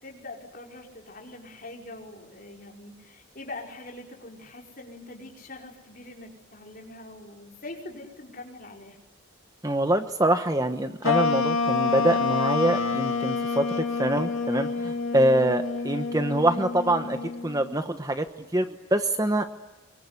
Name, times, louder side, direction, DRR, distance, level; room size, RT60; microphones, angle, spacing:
voice 1, 0.0-9.0, left 2 dB, 45° left, 0 dB, 5.3 m, -43 dB
voice 2, 9.6-18.3 18.5-19.4, right 1 dB, 15° right, 8 dB, 1.1 m, -25 dB
sound 1, 11.0-17.7, left 4 dB, 75° left, 2.8 m, -27 dB
24.0 x 24.0 x 9.8 m, 1.0 s
head